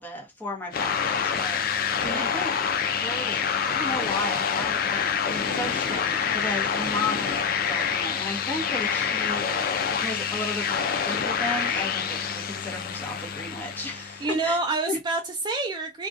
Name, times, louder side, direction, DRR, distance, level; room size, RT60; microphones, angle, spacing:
voice 1, 0.0-9.4 10.0-14.6 14.9-15.0, left 2 dB, 10° left, 0.8 m, -34 dB
sound 1, 0.7-14.4, left 7 dB, 55° left, 0.4 m, -27 dB
voice 2, 14.0-16.1, right 3 dB, 25° right, 0.3 m, -28 dB
2.4 x 2.2 x 2.5 m
head